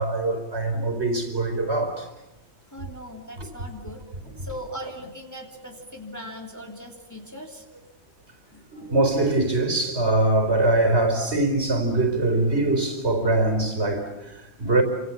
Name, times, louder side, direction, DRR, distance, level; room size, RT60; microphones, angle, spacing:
voice 1, 0.0-2.1 3.4-3.5 8.7-14.8, right 2 dB, 40° right, 4.6 m, -23 dB
voice 2, 2.7-7.7 8.5-8.6 14.5-14.6, equal, 10° left, 3.0 m, -39 dB
29.5 x 26.0 x 7.5 m
omnidirectional pair, 1.7 m